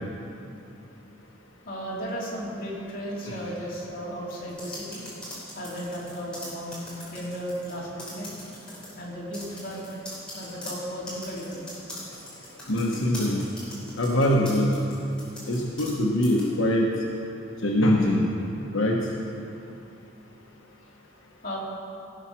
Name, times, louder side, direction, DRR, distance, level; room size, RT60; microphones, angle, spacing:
voice 1, 1.6-5.0 5.5-8.3 9.0-9.8 10.3-11.6 21.4-21.6, equal, 45° left, -6 dB, 3.0 m, -35 dB
sound 1, 4.5-7.7 8.0-8.9 9.3-16.0 16.2-16.5, left 1 dB, 5° left, 3.4 m, -41 dB
voice 2, 12.7-13.5 14.0-14.7 15.5-16.9 17.6-18.3 18.7-19.1, left 1 dB, 85° left, -1 dB, 1.1 m, -23 dB
16.5 x 7.2 x 6.0 m, 2.8 s
head